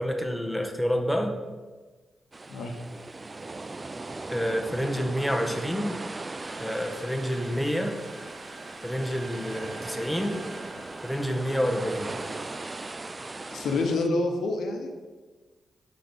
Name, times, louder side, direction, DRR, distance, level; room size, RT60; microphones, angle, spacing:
voice 1, 0.0-1.3 4.3-5.9 6.6-8.0 8.8-10.4 11.0-12.1, equal, ahead, 3 dB, 1.0 m, -28 dB
sound 1, 2.3-14.1, right 3 dB, 35° right, 0.3 m, -39 dB
sound 2, 6.4-12.9, right 2 dB, 50° right, 0.9 m, -46 dB
voice 2, 13.5-14.9, left 2 dB, 80° left, 3 dB, 0.8 m, -27 dB
5.9 x 3.9 x 5.2 m, 1.3 s
supercardioid pair, 50°, 0 cm